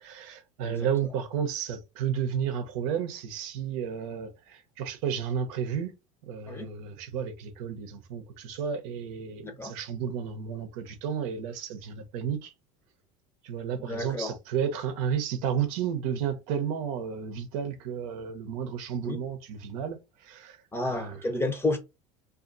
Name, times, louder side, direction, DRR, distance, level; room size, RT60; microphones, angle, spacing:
voice 1, 0.0-5.9 6.2-12.5 13.4-21.3, right 8 dB, 80° right, 0.7 m, -32 dB
voice 2, 9.4-9.7 13.9-14.3 19.0-19.2 20.7-21.8, left 2 dB, 15° left, 0.6 m, -30 dB
2.5 x 2.5 x 2.4 m
supercardioid pair, 105°, 16 cm